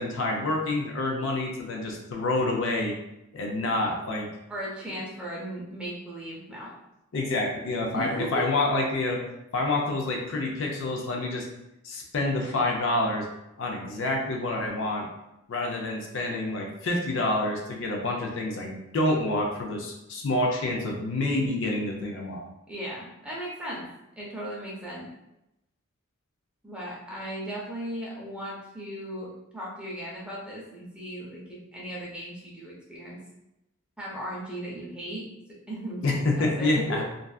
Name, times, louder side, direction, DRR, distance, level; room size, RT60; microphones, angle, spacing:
voice 1, 0.0-3.0 3.3-4.3 7.1-9.2 9.5-11.5 11.8-13.3 13.6-15.1 15.5-22.4 36.0-37.0, left 2 dB, 60° left, 0 dB, 0.5 m, -27 dB
voice 2, 4.5-6.7 7.9-8.5 22.7-23.8 24.2-25.1 26.6-33.2 34.0-35.3 35.7-37.0, right 1 dB, 5° right, -5 dB, 0.5 m, -37 dB
2.5 x 2.3 x 2.3 m, 0.89 s
head